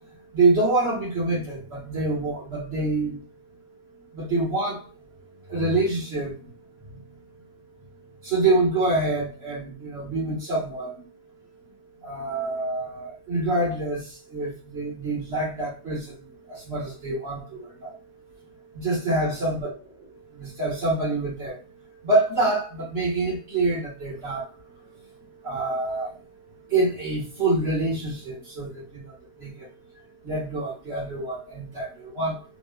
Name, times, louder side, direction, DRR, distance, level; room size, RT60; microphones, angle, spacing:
voice 1, 0.3-3.2 4.1-4.8 5.5-6.3 8.2-11.0 12.0-14.0 14.3-16.1 16.7-17.9 18.7-19.7 20.3-21.5 22.0-24.4 25.4-26.1 26.7-29.0 29.4-29.7 30.2-32.4, right 2 dB, 45° right, -5 dB, 1.8 m, -26 dB
3.8 x 2.4 x 2.4 m, 0.35 s
omnidirectional pair, 1.6 m